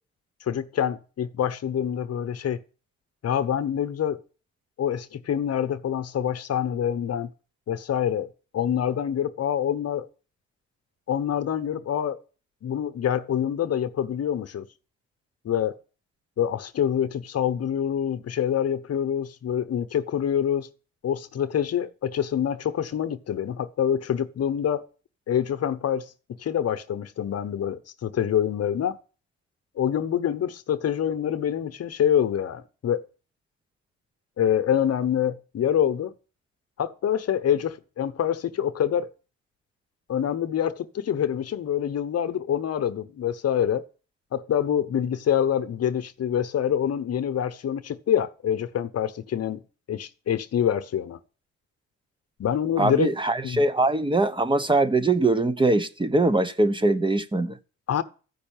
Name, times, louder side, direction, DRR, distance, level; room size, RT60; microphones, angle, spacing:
voice 1, 0.5-2.6 3.2-4.2 4.8-7.3 7.7-10.1 11.1-12.2 12.6-14.6 15.4-15.8 16.4-20.7 21.0-24.8 25.3-26.0 26.4-29.0 29.8-33.1 34.4-36.1 36.8-39.1 40.1-43.8 44.3-49.6 49.9-51.2 52.4-53.1 53.4-53.6 57.9-58.0, left 9 dB, 55° left, 1.0 m, -26 dB
voice 2, 52.8-57.6, right 2 dB, 15° right, 0.9 m, -22 dB
14.0 x 5.6 x 9.0 m
cardioid pair, 90°, 30 cm